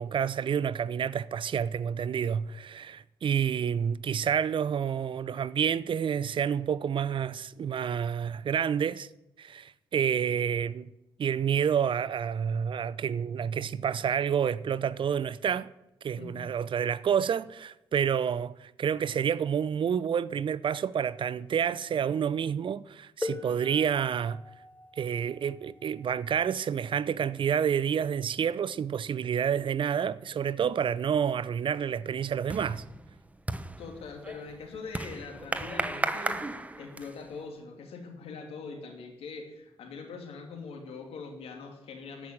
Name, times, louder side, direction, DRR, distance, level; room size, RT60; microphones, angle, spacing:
voice 1, 0.0-9.1 9.4-10.9 11.2-15.7 16.0-24.4 25.0-32.8, right 8 dB, 55° right, 0.6 m, -29 dB
sound 1, 23.2-28.6 29.7-29.8 30.6-30.8, left 2 dB, 15° left, 1.2 m, -43 dB
sound 2, 30.9-31.2 31.6-37.4, right 2 dB, 15° right, 1.0 m, -36 dB
voice 2, 33.8-42.3, left 4 dB, 80° left, 2.8 m, -42 dB
14.0 x 6.1 x 8.7 m
cardioid pair, 65°, 10 cm